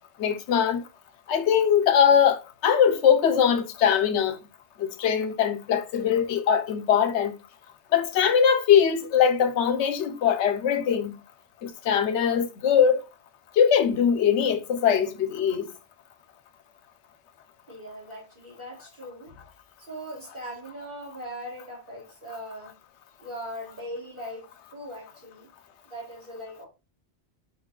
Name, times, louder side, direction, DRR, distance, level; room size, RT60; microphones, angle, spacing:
voice 1, 0.2-0.8 1.3-4.4 4.8-7.3 7.9-11.1 11.6-13.0 13.6-15.7, left 8 dB, 90° left, 0.9 m, -21 dB
voice 2, 17.7-19.4 19.8-22.7 23.2-25.5 25.9-26.7, equal, 45° right, 1.6 m, -40 dB
4.6 x 2.3 x 3.6 m
omnidirectional pair, 1.2 m